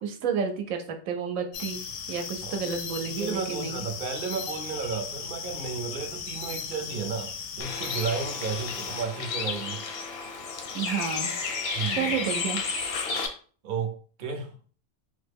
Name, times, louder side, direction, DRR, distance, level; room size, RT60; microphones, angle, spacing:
voice 1, 0.0-3.8 10.7-11.3 11.9-12.6, right 6 dB, 80° right, 4 dB, 1.0 m, -31 dB
sound 1, 1.5-9.1, left 6 dB, 80° left, 1.0 m, -37 dB
voice 2, 3.0-9.8 11.7-12.2 13.6-14.5, right 5 dB, 50° right, 5 dB, 0.7 m, -33 dB
Bird, 7.6-13.3, left 5 dB, 60° left, 0.7 m, -32 dB
3.3 x 2.1 x 3.4 m, 0.42 s
omnidirectional pair, 1.4 m